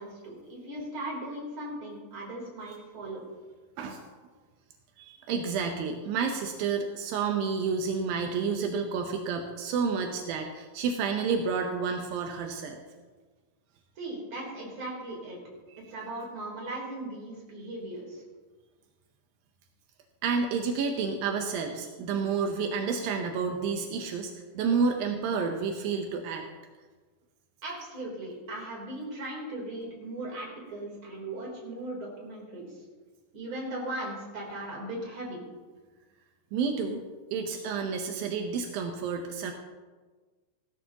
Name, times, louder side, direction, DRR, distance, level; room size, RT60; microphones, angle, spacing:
voice 1, 0.0-3.3 14.0-15.4 15.9-18.2 27.6-32.8 33.3-35.4, right 1 dB, 30° right, -3 dB, 3.7 m, -38 dB
voice 2, 5.0-12.8 20.2-26.5 36.5-37.0 37.3-39.5, right 5 dB, 85° right, 4 dB, 2.0 m, -30 dB
17.0 x 13.5 x 2.9 m, 1.3 s
omnidirectional pair, 5.4 m